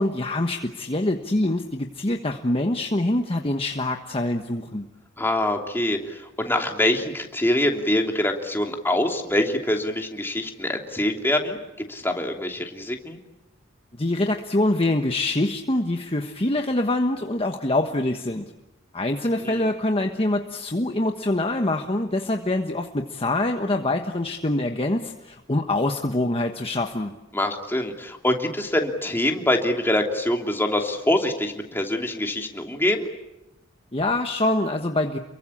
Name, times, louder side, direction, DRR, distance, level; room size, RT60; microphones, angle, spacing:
voice 1, 0.0-4.9 14.0-18.4 18.9-27.1 33.9-35.2, left 1 dB, 30° left, 4 dB, 1.3 m, -25 dB
voice 2, 5.2-13.2 19.4-19.7 27.3-33.1, left 1 dB, 10° left, 2 dB, 3.1 m, -25 dB
29.0 x 23.0 x 8.7 m, 0.93 s
head